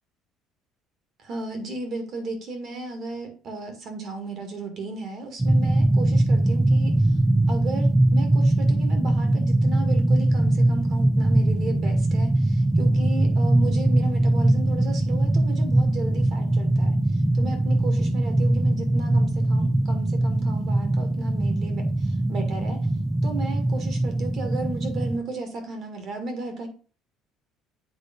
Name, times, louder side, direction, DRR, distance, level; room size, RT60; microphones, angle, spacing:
voice 1, 1.2-7.1 7.5-22.9 23.2-26.7, right 2 dB, 40° right, 5 dB, 1.9 m, -35 dB
sound 1, 5.4-25.2, right 1 dB, 5° right, 0.5 m, -21 dB
8.2 x 3.2 x 5.2 m, 0.39 s
cardioid pair, 160°, 0 cm